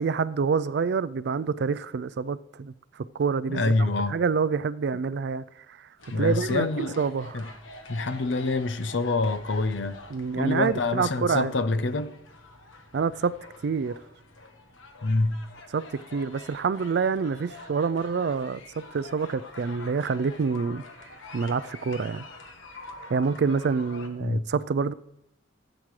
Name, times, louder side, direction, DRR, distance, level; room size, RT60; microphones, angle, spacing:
voice 1, 0.0-2.7 3.1-5.4 6.2-7.5 10.1-11.5 12.9-13.3 13.6-13.9 15.7-18.6 18.9-20.8 21.3-22.2 23.1-24.9, right 5 dB, 60° right, 0.4 m, -27 dB
voice 2, 3.5-4.2 6.1-7.0 7.3-7.5 7.9-10.0 10.4-12.1 15.0-15.4 24.2-24.5, left 2 dB, 70° left, 0.7 m, -26 dB
sound 1, 6.0-24.1, left 2 dB, 90° left, 1.3 m, -47 dB
15.5 x 8.8 x 3.2 m
head